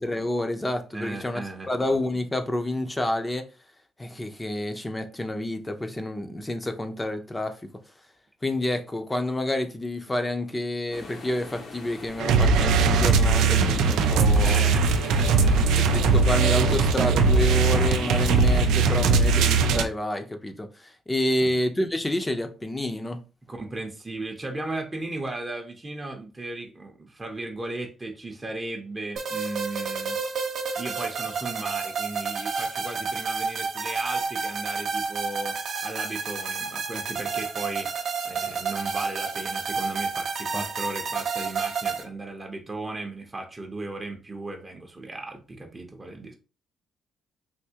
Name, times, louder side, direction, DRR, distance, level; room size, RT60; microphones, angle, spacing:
voice 1, 0.0-1.4 1.7-3.4 4.0-7.5 8.4-14.7 15.8-23.2 40.5-40.6, left 1 dB, 15° left, 0.6 m, -29 dB
voice 2, 0.9-1.7 14.3-16.3 16.6-17.1 21.4-21.5 23.5-30.2 30.8-37.9 38.2-46.3, right 2 dB, 25° right, 0.7 m, -36 dB
sound 1, 10.9-18.7, left 3 dB, 60° left, 0.9 m, -41 dB
sound 2, 12.2-19.8, right 4 dB, 90° right, 0.4 m, -20 dB
sound 3, 29.2-42.0, right 5 dB, 65° right, 0.9 m, -30 dB
3.4 x 2.6 x 2.8 m
cardioid pair, 90°, 0 cm